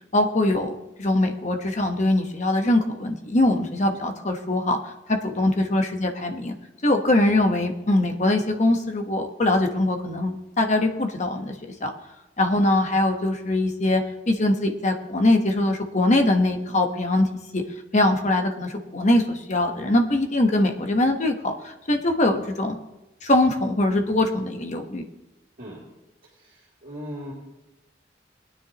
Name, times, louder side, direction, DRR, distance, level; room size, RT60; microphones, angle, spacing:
voice 1, 0.1-0.7 1.0-4.8 5.1-6.5 6.8-11.5 11.8-11.9 12.4-14.0 14.3-17.3 17.5-17.6 17.9-22.7 23.2-25.0, left 1 dB, 40° left, 4 dB, 1.2 m, -22 dB
voice 2, 26.2-27.3, equal, 50° right, -7 dB, 2.8 m, -39 dB
20.5 x 9.7 x 3.0 m, 1.0 s
head